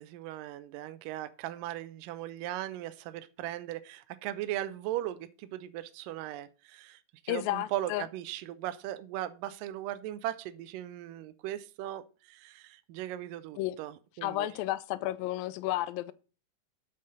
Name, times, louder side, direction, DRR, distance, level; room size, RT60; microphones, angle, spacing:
voice 1, 0.0-14.5, right 13 dB, 80° right, 2.2 m, -38 dB
voice 2, 7.3-8.1 13.6-13.8 14.2-16.1, left 15 dB, 85° left, 2.4 m, -32 dB
7.6 x 5.7 x 6.4 m
omnidirectional pair, 4.0 m